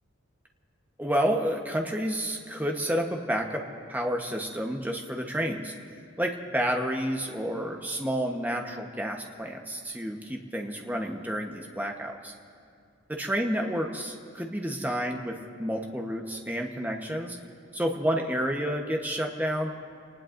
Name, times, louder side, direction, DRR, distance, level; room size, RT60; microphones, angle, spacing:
voice 1, 1.0-3.6 3.9-5.7 6.2-12.3 13.1-17.4 17.7-19.7, equal, 10° right, 2 dB, 1.0 m, -30 dB
27.5 x 19.0 x 2.6 m, 2.3 s
head